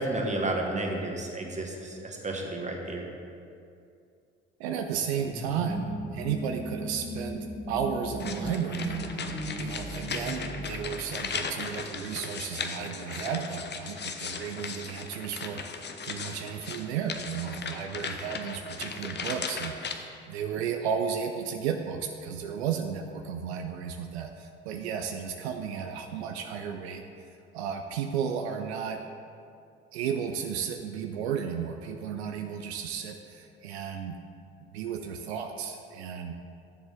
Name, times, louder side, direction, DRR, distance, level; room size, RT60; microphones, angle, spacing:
voice 1, 0.0-3.1, right 2 dB, 20° right, 1 dB, 1.5 m, -31 dB
voice 2, 4.6-9.3 9.6-27.0 27.5-29.0 29.9-34.2 34.7-36.3, right 7 dB, 80° right, 5 dB, 0.5 m, -33 dB
sound 1, 5.2-11.7, equal, 5° left, 1.5 m, -37 dB
sound 2, 8.2-20.0, left 5 dB, 35° left, 0.8 m, -37 dB
11.0 x 7.1 x 3.6 m, 2.4 s
figure-of-eight pair, 50°, 32 cm